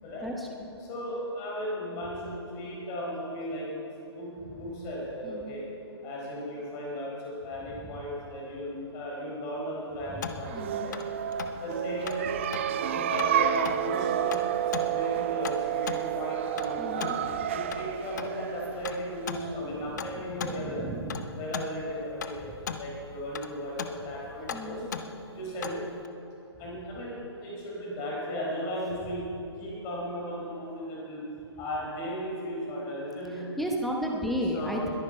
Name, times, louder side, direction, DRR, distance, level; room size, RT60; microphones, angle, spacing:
voice 1, 0.8-3.7 4.1-5.7 6.0-11.0 11.6-12.4 12.7-17.1 17.5-20.9 21.3-24.8 25.3-25.8 26.6-29.2 29.6-31.2 31.6-33.5 34.5-34.9, equal, 20° left, -3 dB, 4.2 m, -36 dB
voice 2, 5.2-5.6 10.2-10.9 16.8-17.2 19.9-21.2 24.5-24.9 33.6-34.9, equal, ahead, 0 dB, 1.0 m, -34 dB
sound 1, 10.2-26.1, left 6 dB, 40° left, 0.8 m, -40 dB
sound 2, 10.4-19.9, right 11 dB, 30° right, 0.4 m, -30 dB
21.0 x 10.0 x 4.6 m, 2.8 s
figure-of-eight pair, 130°, 14 cm